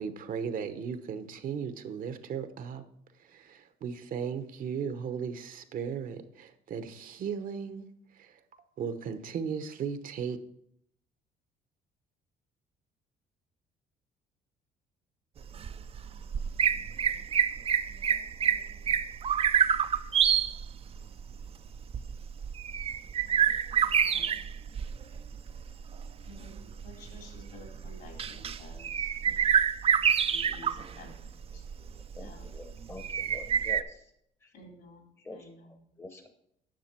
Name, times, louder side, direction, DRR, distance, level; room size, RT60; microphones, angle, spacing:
voice 1, 0.0-2.8 3.1-7.9 8.1-10.4, right 7 dB, 55° right, 0.9 m, -36 dB
sound 1, 15.4-33.8, right 8 dB, 35° right, 0.5 m, -28 dB
voice 2, 23.8-24.4 26.2-29.1 30.1-31.8 32.2-32.5 34.5-35.9, left 2 dB, 70° left, 3.6 m, -52 dB
voice 3, 32.2-34.0 35.2-35.5 36.0-36.3, left 2 dB, 15° left, 0.9 m, -45 dB
10.5 x 6.4 x 4.4 m
cardioid pair, 110°, 17 cm